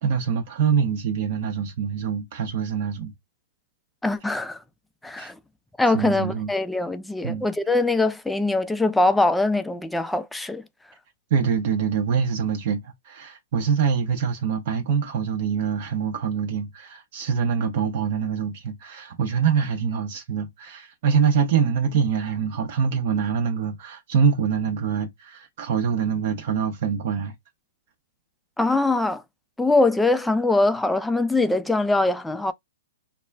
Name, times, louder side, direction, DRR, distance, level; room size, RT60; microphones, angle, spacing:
voice 1, 0.0-3.1 5.2-5.3 5.9-6.5 7.2-7.5 11.3-27.3, right 7 dB, 50° right, 0.5 m, -24 dB
voice 2, 4.0-4.6 5.0-5.4 5.8-10.6 28.6-29.2 29.6-32.5, left 2 dB, 5° left, 0.3 m, -22 dB
2.3 x 2.1 x 3.3 m
hypercardioid pair, 130°, 0 cm